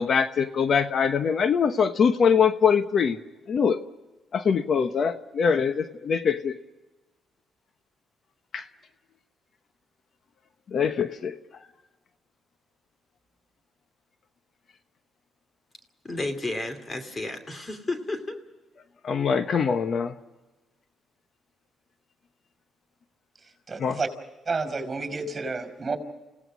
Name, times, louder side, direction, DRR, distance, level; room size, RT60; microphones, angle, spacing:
voice 1, 0.0-3.2 3.5-3.8 4.3-6.6 8.5-8.7 10.7-11.4 19.0-20.2 23.8-24.0, left 6 dB, 55° left, 10 dB, 1.0 m, -23 dB
voice 2, 16.0-18.4, left 2 dB, 30° left, 7 dB, 2.7 m, -32 dB
voice 3, 23.7-24.1 24.5-26.0, right 3 dB, 30° right, 7 dB, 5.2 m, -30 dB
29.0 x 17.5 x 6.2 m, 1.1 s
cardioid pair, 90°, 0 cm